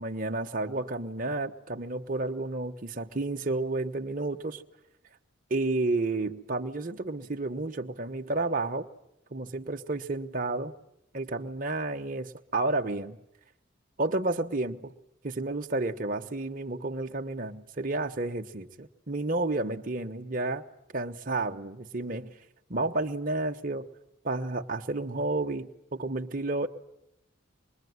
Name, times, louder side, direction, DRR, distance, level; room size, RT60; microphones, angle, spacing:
voice 1, 0.0-4.6 5.5-8.9 9.3-10.7 11.1-13.2 14.0-14.9 15.2-20.6 20.9-22.4 22.7-23.9 24.2-26.7, right 2 dB, 40° right, 4 dB, 1.1 m, -31 dB
25.5 x 21.5 x 9.5 m, 0.82 s
head